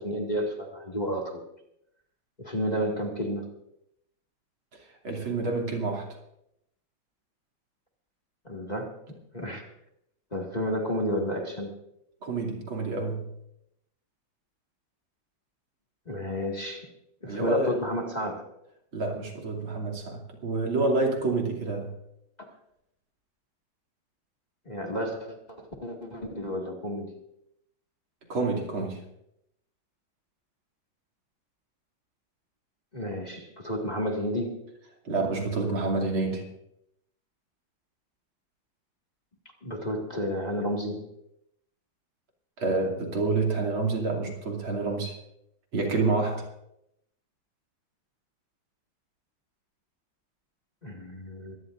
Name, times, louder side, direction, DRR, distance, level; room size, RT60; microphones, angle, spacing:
voice 1, 0.0-1.4 2.4-3.5 8.4-8.9 9.3-9.7 10.3-11.7 16.1-16.9 17.2-18.5 24.7-27.2 32.9-34.6 39.6-41.0 50.8-51.6, equal, 20° left, 0 dB, 1.9 m, -31 dB
voice 2, 5.0-6.1 12.2-13.3 17.3-17.8 18.9-22.0 28.3-29.0 35.1-36.5 42.6-45.2 45.7-46.5, right 3 dB, 80° right, 0 dB, 3.6 m, -28 dB
23.5 x 17.5 x 2.6 m, 0.79 s
omnidirectional pair, 2.2 m